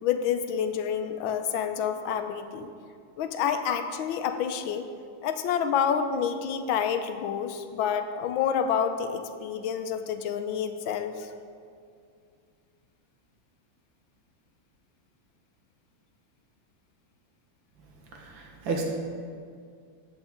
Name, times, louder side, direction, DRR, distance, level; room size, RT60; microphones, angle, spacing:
voice 1, 0.0-2.7 3.2-4.9 5.2-11.3, left 8 dB, 85° left, 8 dB, 1.5 m, -28 dB
voice 2, 18.2-18.8, right 4 dB, 85° right, 0 dB, 2.1 m, -32 dB
14.0 x 9.0 x 3.7 m, 2.3 s
omnidirectional pair, 2.1 m